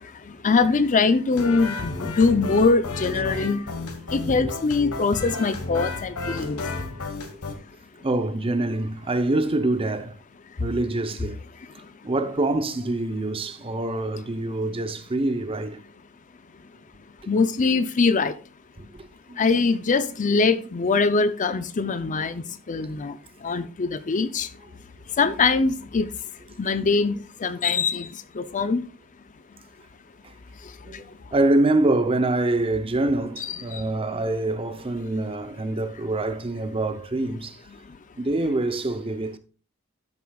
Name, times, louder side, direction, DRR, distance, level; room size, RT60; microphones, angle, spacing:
voice 1, 0.4-3.6 4.1-6.6 17.3-18.3 19.4-23.1 23.4-24.5 25.2-26.1 26.6-28.1 28.4-28.8 33.4-33.8, left 4 dB, 35° left, 0.5 m, -22 dB
sound 1, 1.3-7.5, left 3 dB, 80° left, 1.4 m, -32 dB
voice 2, 8.0-10.2 10.6-11.4 12.0-15.8 18.9-19.6 30.2-30.3 30.8-37.6 38.2-39.4, right 2 dB, 25° right, 0.6 m, -25 dB
12.5 x 6.8 x 2.3 m
head